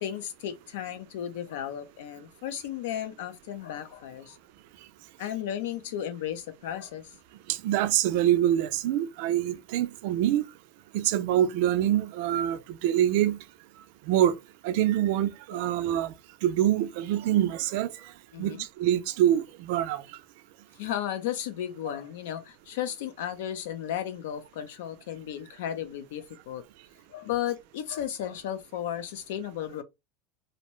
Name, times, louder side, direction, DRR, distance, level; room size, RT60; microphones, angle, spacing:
voice 1, 0.0-4.4 5.2-7.1 18.3-18.6 20.8-26.6 27.1-29.8, left 10 dB, 80° left, 0.5 m, -34 dB
voice 2, 7.5-10.4 10.9-13.4 14.1-14.4 14.6-16.1 16.4-18.1 18.4-20.2, right 12 dB, 55° right, 0.3 m, -25 dB
2.6 x 2.1 x 3.0 m
supercardioid pair, 175°, 0 cm